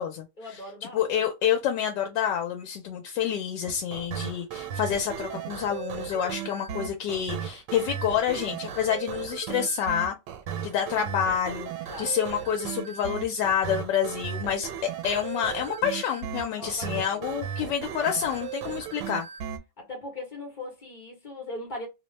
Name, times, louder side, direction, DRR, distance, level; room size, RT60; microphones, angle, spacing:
voice 1, 0.4-1.2 4.1-4.3 11.9-12.2 16.5-17.2 18.9-19.0 19.8-21.9, left 2 dB, 35° left, 0.8 m, -40 dB
voice 2, 0.9-10.2 10.6-11.7 12.0-19.3, left 8 dB, 85° left, 1.2 m, -28 dB
sound 1, 3.7-19.6, right 8 dB, 90° right, 1.3 m, -36 dB
3.0 x 2.1 x 3.0 m
omnidirectional pair, 1.9 m